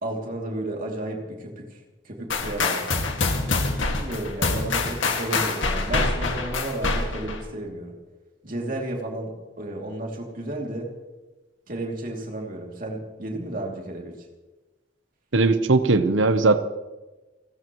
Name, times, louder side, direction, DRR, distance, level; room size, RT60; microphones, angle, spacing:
voice 1, 0.0-2.8 3.9-7.9 8.4-10.9 11.7-14.3, right 1 dB, 45° right, 0 dB, 2.8 m, -32 dB
sound 1, 2.3-7.4, left 3 dB, 85° left, 2.0 m, -25 dB
voice 2, 15.3-16.6, right 3 dB, 80° right, 11 dB, 0.9 m, -19 dB
29.5 x 14.0 x 3.1 m, 1.2 s
head